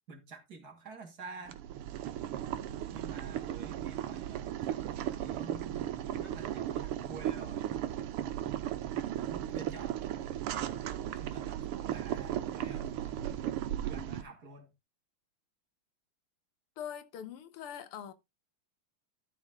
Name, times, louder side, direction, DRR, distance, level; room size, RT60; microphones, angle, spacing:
voice 1, 0.1-1.6 2.9-5.9 6.2-7.7 8.9-10.2 10.5-13.2 13.7-14.7, right 3 dB, 45° right, 2.1 m, -50 dB
Boiling, 1.5-14.2, right 11 dB, 90° right, 1.7 m, -36 dB
voice 2, 16.8-18.1, left 9 dB, 80° left, 1.8 m, -42 dB
12.5 x 4.3 x 3.6 m
omnidirectional pair, 2.4 m